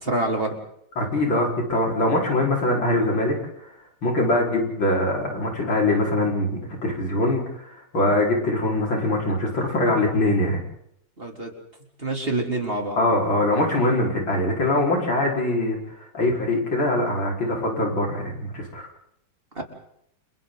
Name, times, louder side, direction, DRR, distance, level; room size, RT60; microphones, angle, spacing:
voice 1, 0.0-0.5 11.2-11.5 12.0-13.0 19.6-19.7, right 2 dB, 30° right, 1 dB, 3.6 m, -26 dB
voice 2, 1.0-3.3 4.0-10.6 13.0-15.8 16.1-18.8, left 1 dB, 80° left, -1 dB, 5.8 m, -23 dB
30.0 x 28.5 x 4.0 m, 0.73 s
omnidirectional pair, 2.1 m